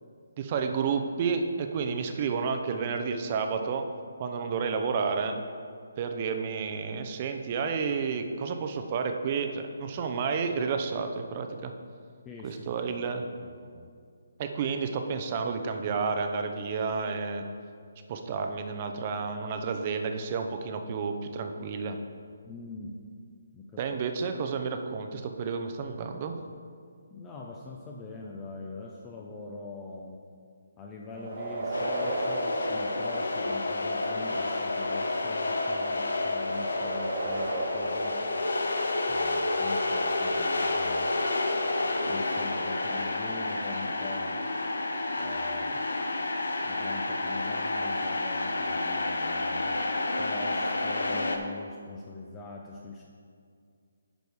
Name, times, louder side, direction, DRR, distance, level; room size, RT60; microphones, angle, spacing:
voice 1, 0.4-3.9 4.2-5.4 6.0-11.7 12.4-13.2 14.4-17.4 18.1-22.0 23.8-26.4, right 5 dB, 35° right, 6 dB, 0.7 m, -31 dB
voice 2, 12.2-12.7 13.4-13.9 22.5-22.9 23.5-23.8 27.1-30.2 30.8-38.2 39.1-41.1 42.1-44.3 45.2-45.8 46.6-49.8 50.2-53.0, left 3 dB, 15° left, -1 dB, 0.6 m, -43 dB
sound 1, 31.1-33.8 36.4-39.1, right 2 dB, 65° right, 1.9 m, -35 dB
sound 2, 31.7-51.4, left 2 dB, 80° left, 0.9 m, -30 dB
9.1 x 5.2 x 4.9 m, 2.2 s
figure-of-eight pair, 150°, 0 cm